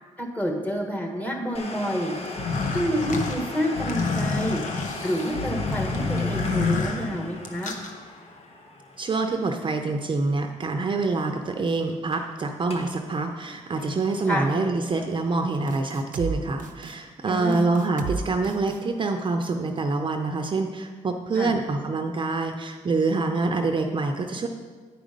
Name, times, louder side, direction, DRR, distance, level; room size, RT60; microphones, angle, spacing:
voice 1, 0.2-2.1 2.7-4.6 5.0-7.7 14.3-14.5 17.3-17.8 21.3-21.5, equal, 10° left, 2 dB, 1.5 m, -28 dB
Domestic sounds home sounds, 1.5-11.0 11.2-11.3 11.9-12.3 12.6-13.0 13.3-15.4 15.8-15.9 16.6-16.7, left 2 dB, 50° left, 1.2 m, -39 dB
sound 1, 2.3-7.9, left 4 dB, 75° left, 0.9 m, -28 dB
voice 2, 9.0-24.5, right 3 dB, 40° right, 5 dB, 0.6 m, -26 dB
sound 2, 15.7-16.3 16.6-17.0 17.5-18.2 18.4-18.8, right 6 dB, 85° right, 0.6 m, -33 dB
9.1 x 5.0 x 5.2 m, 1.5 s
cardioid pair, 80°, 13 cm